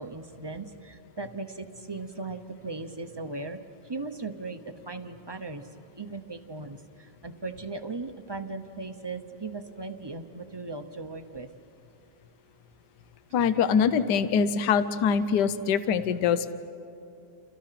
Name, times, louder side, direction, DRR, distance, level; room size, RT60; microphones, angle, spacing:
voice 1, 0.0-3.6 3.8-5.7 6.0-11.5, right 3 dB, 25° right, 7 dB, 0.5 m, -38 dB
voice 2, 13.3-16.5, left 7 dB, 70° left, 12 dB, 1.4 m, -24 dB
29.5 x 29.0 x 5.9 m, 2.6 s
omnidirectional pair, 1.9 m